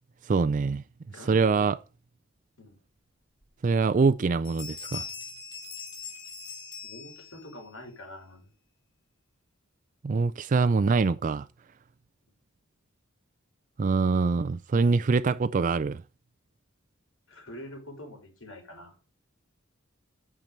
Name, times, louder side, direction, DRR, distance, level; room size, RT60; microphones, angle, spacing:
voice 1, 0.2-0.8 1.3-1.8 3.6-5.1 10.0-11.5 13.8-16.0, right 4 dB, 40° right, 0.3 m, -24 dB
voice 2, 1.1-1.7 2.6-2.8 6.8-8.5 17.3-19.0, left 1 dB, 80° left, 4.6 m, -45 dB
sound 1, 3.4-3.5 3.9-4.2 4.4-7.6, left 5 dB, 20° left, 2.2 m, -41 dB
9.1 x 5.9 x 5.4 m
head